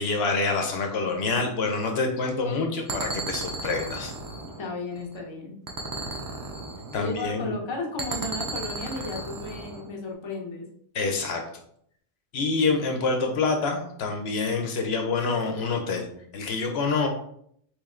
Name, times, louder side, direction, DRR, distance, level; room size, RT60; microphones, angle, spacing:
voice 1, 0.0-4.2 6.9-7.6 10.9-11.4 12.3-16.1 16.3-17.1, left 4 dB, 70° left, 3 dB, 0.8 m, -26 dB
sound 1, 2.9-5.2 5.7-7.3 8.0-9.9, right 2 dB, 35° right, 0.3 m, -35 dB
voice 2, 4.6-5.5 6.9-10.6 12.4-12.8, left 3 dB, 30° left, 0 dB, 0.6 m, -34 dB
3.2 x 3.0 x 3.6 m, 0.68 s
omnidirectional pair, 1.1 m